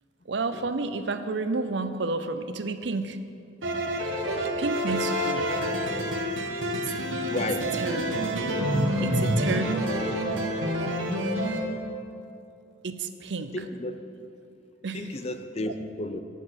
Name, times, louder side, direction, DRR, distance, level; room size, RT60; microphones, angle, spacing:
voice 1, 0.3-3.2 4.6-5.5 6.7-6.9 7.4-7.5 7.7-8.2 8.7-10.3 12.8-13.7 14.8-15.2, right 3 dB, 65° right, 10 dB, 0.6 m, -31 dB
sound 1, 3.6-11.6, equal, 90° right, 1.4 m, -27 dB
voice 2, 7.3-7.7 13.5-14.0 14.9-16.2, left 1 dB, 30° left, 8 dB, 0.6 m, -32 dB
10.0 x 8.2 x 6.2 m, 2.5 s
head